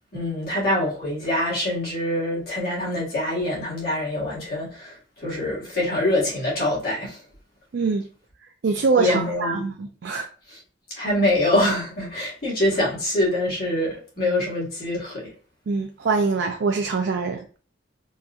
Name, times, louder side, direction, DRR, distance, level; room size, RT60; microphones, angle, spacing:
voice 1, 0.1-7.2 9.0-9.6 10.5-10.6 10.9-15.3, left 1 dB, 55° left, 1.7 m, -25 dB
voice 2, 7.7-8.0 8.6-10.3 15.7-17.6, right 4 dB, 65° right, 0.4 m, -24 dB
4.1 x 2.4 x 2.4 m
head